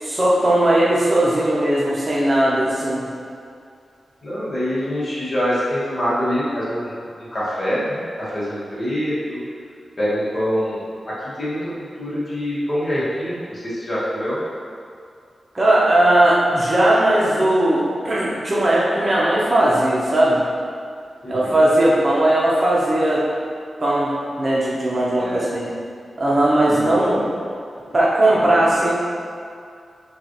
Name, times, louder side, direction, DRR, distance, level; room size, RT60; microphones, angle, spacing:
voice 1, 0.0-3.1 15.5-20.4 21.3-23.2 23.8-24.1 24.4-25.7 26.2-27.2 27.9-28.9, right 1 dB, 35° right, -6 dB, 0.7 m, -18 dB
voice 2, 4.2-9.4 10.0-14.4 21.2-21.6 25.2-25.5 26.6-27.2, equal, 40° left, -9 dB, 1.2 m, -25 dB
5.6 x 2.4 x 2.9 m, 2.3 s
wide cardioid pair, 110°, 0 cm